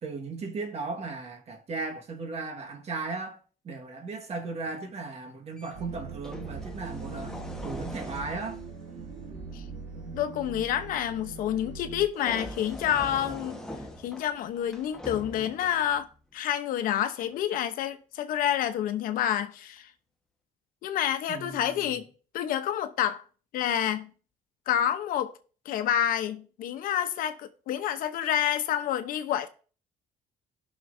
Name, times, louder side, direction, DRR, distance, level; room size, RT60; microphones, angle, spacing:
voice 1, 0.0-3.4 3.6-7.4 7.6-8.6 21.3-21.9, right 3 dB, 45° right, 1.7 m, -36 dB
sound 1, 5.6-5.7 6.2-9.7 12.1-16.2 17.2-17.4, left 1 dB, 5° left, 1.4 m, -42 dB
sound 2, 5.7-12.1, right 5 dB, 85° right, 2.7 m, -41 dB
voice 2, 10.1-13.6 14.0-16.1 16.3-19.9 20.8-22.0 22.3-23.2 23.5-24.1 24.7-25.3 25.6-29.5, left 10 dB, 75° left, 0.9 m, -28 dB
17.0 x 6.1 x 2.7 m
cardioid pair, 95°, 15 cm